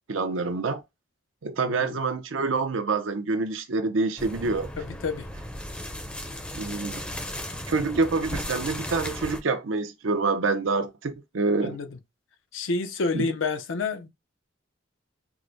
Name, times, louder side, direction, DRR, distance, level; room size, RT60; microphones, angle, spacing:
voice 1, 0.1-0.8 1.4-4.7 6.5-6.9 7.7-11.8 13.1-13.3, right 3 dB, 90° right, 0.6 m, -26 dB
sound 1, 4.2-9.4, left 1 dB, 5° left, 0.5 m, -36 dB
voice 2, 4.8-5.3 11.6-11.9 12.5-14.1, left 4 dB, 85° left, 0.6 m, -29 dB
4.7 x 2.1 x 2.5 m
head